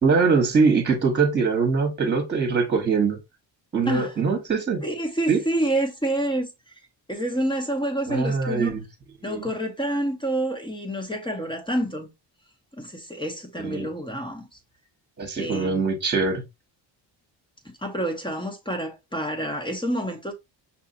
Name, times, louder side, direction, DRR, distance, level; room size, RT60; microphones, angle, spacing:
voice 1, 0.0-3.2 3.7-4.8 5.3-5.4 8.1-8.8 9.2-9.4 13.6-13.9 15.2-16.4, right 4 dB, 25° right, 1.3 m, -22 dB
voice 2, 4.8-6.5 7.1-8.7 9.2-12.1 12.7-14.5 15.4-15.9 17.6-20.3, right 1 dB, 10° left, 1.0 m, -28 dB
5.9 x 2.7 x 2.8 m
cardioid pair, 115°, 46 cm